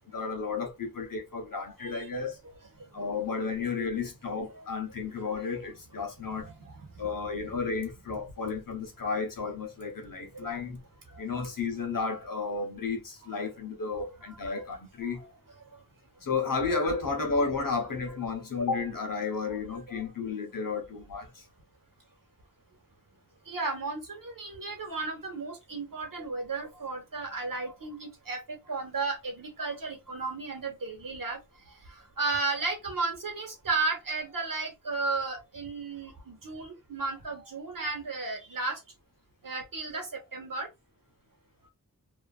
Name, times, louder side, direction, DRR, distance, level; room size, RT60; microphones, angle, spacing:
voice 1, 0.1-2.4 2.9-6.5 7.0-10.8 11.2-15.2 16.2-21.3, left 4 dB, 80° left, 0.9 m, -32 dB
voice 2, 1.5-2.1 2.8-2.9 3.4-3.8 4.5-4.7 6.2-7.1 10.3-10.5 11.1-11.2 13.2-13.3 14.3-14.6 15.0-15.3 15.6-15.7 19.7-20.0 23.5-31.4 31.9-38.8 39.4-40.7, right 3 dB, 80° right, 1.1 m, -34 dB
2.8 x 2.5 x 2.3 m
wide cardioid pair, 60°, 33 cm